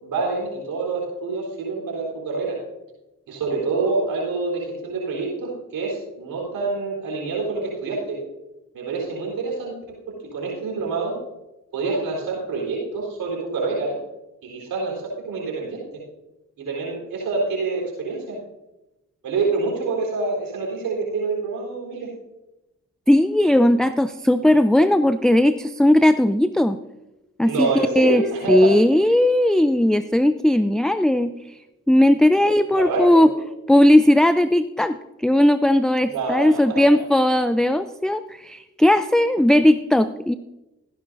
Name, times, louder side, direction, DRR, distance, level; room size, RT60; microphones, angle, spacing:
voice 1, 0.0-2.6 3.3-8.2 8.7-9.9 10.3-11.2 11.7-14.0 14.4-15.8 16.6-18.4 19.2-22.1 27.4-28.7 32.7-33.3 36.0-36.8, right 3 dB, 85° right, -2 dB, 4.3 m, -26 dB
voice 2, 23.1-26.8 27.4-27.7 28.0-28.2 28.5-31.5 31.9-33.3 33.7-40.3, left 1 dB, ahead, 12 dB, 0.5 m, -17 dB
15.5 x 10.5 x 2.7 m, 0.97 s
supercardioid pair, 40°, 33 cm